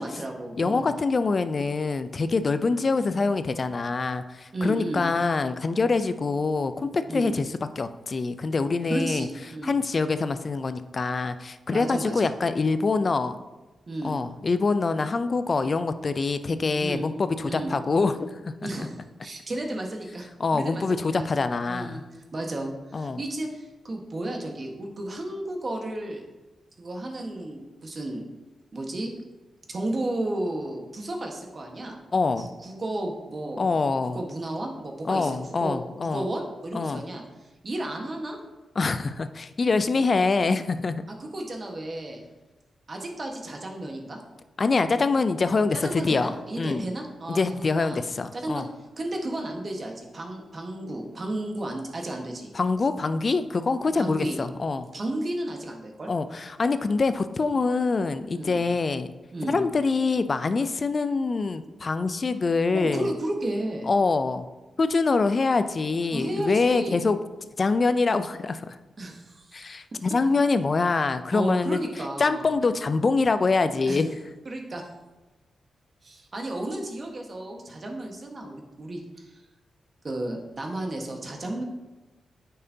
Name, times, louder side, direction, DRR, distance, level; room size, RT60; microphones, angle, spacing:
voice 1, 0.0-0.9 4.5-5.0 7.1-7.3 8.9-9.8 11.7-12.3 13.9-14.2 16.8-17.1 17.4-17.7 18.6-21.3 21.7-22.0 22.3-26.2 26.8-28.2 28.7-29.1 29.7-32.0 32.4-33.7 34.1-37.2 37.6-38.4 41.1-42.2 42.9-44.2 45.8-48.0 48.3-48.6 49.0-52.5 54.0-54.4 54.9-56.1 58.3-58.6 59.3-59.6 62.7-63.9 66.1-67.0 69.0-69.6 71.3-72.5 73.9-74.0 74.4-74.9 76.0-79.3 80.0-81.6, right 1 dB, 50° right, 2 dB, 1.4 m, -33 dB
voice 2, 0.6-7.5 7.8-9.3 9.6-13.3 14.0-18.7 20.4-22.0 22.9-23.2 32.1-32.5 33.6-34.2 35.0-36.3 36.7-37.0 38.8-41.0 44.6-46.9 47.3-48.7 52.5-54.9 56.1-59.1 59.4-63.1 63.9-64.4 64.8-67.2 67.6-68.8 69.5-71.8 72.2-74.2, left 4 dB, 50° left, 11 dB, 0.5 m, -25 dB
9.3 x 5.5 x 2.8 m, 1.1 s
supercardioid pair, 40°, 0 cm